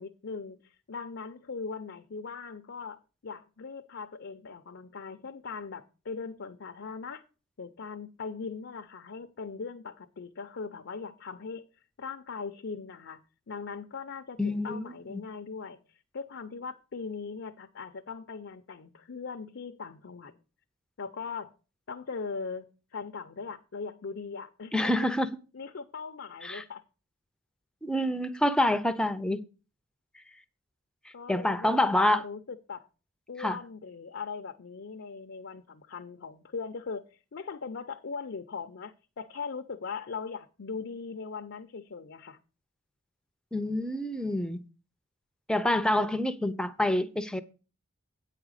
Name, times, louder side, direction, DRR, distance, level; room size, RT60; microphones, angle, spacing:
voice 1, 0.0-7.2 7.6-11.7 12.0-13.2 13.5-20.4 21.0-21.5 21.9-24.9 25.5-26.8 31.1-32.9 33.3-42.4, left 5 dB, 60° left, 0.6 m, -40 dB
voice 2, 14.4-15.2 24.7-25.3 26.4-26.6 27.8-29.4 31.3-32.2 33.4-33.6 43.5-44.6 45.5-47.4, left 1 dB, 5° left, 0.6 m, -27 dB
8.9 x 4.9 x 6.4 m
head